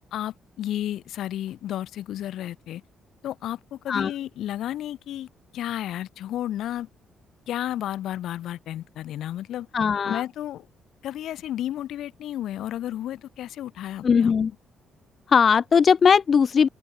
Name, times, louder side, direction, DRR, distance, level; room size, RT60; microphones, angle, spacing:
voice 1, 0.1-2.8 3.2-6.9 7.5-9.7 10.0-10.7 11.0-14.3, left 12 dB, 80° left, 3.7 m, -32 dB
voice 2, 9.7-10.2 14.0-14.5 15.3-16.7, left 6 dB, 45° left, 0.4 m, -19 dB
open air
cardioid pair, 90°, 0 cm